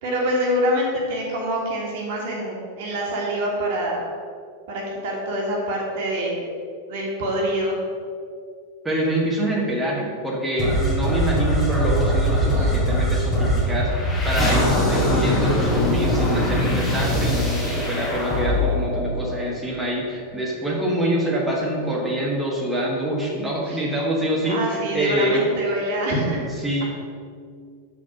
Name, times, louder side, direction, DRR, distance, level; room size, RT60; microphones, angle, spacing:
voice 1, 0.0-4.1 4.7-6.5 6.9-7.8 12.5-12.8 23.7-23.8 24.5-26.5, equal, 50° right, -2 dB, 1.8 m, -25 dB
voice 2, 8.8-25.5 26.6-26.8, right 1 dB, 5° right, -4 dB, 1.4 m, -25 dB
sound 1, 10.6-19.9, equal, 15° left, 2.0 m, -22 dB
6.1 x 5.0 x 6.0 m, 2.2 s
figure-of-eight pair, 90°, 0 cm